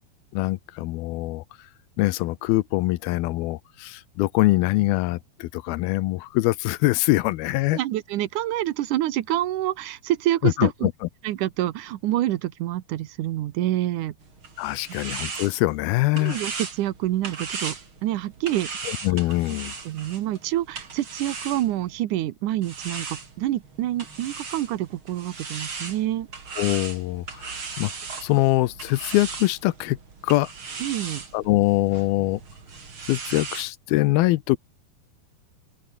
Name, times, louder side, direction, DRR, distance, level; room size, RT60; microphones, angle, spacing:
voice 1, 0.3-1.4 2.0-7.8 10.4-10.9 14.6-16.4 18.9-19.7 26.6-27.9 28.2-30.0 30.2-30.5 31.3-32.4 33.1-34.6, left 19 dB, 80° left, 2.5 m, -23 dB
voice 2, 7.7-10.9 11.2-14.1 16.2-17.8 18.0-18.9 19.9-26.3 30.8-31.2, right 14 dB, 70° right, 2.1 m, -27 dB
sound 1, 14.2-22.0 22.6-33.7, right 5 dB, 35° right, 3.9 m, -37 dB
open air
omnidirectional pair, 4.5 m